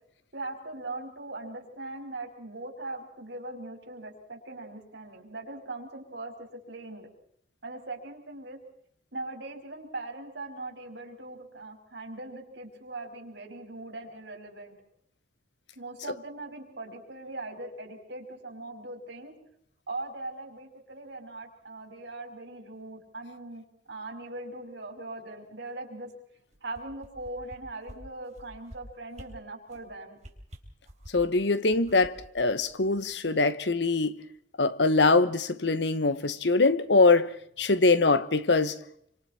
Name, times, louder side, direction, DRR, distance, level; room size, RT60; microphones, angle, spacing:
voice 1, 0.3-7.1 7.6-8.6 9.1-14.7 15.7-19.3 19.9-23.6 23.9-26.1 26.6-30.2, right 2 dB, 85° right, 4.8 m, -40 dB
sound 1, 26.5-27.6 27.9-28.0 28.3-28.8 29.1-29.3 29.7-29.9 30.2-31.3 31.7-33.3 33.6-33.7, equal, 40° right, 3.6 m, -48 dB
voice 2, 31.1-34.2 34.6-37.3 37.6-38.8, left 3 dB, 85° left, 1.2 m, -23 dB
27.5 x 25.5 x 4.4 m
head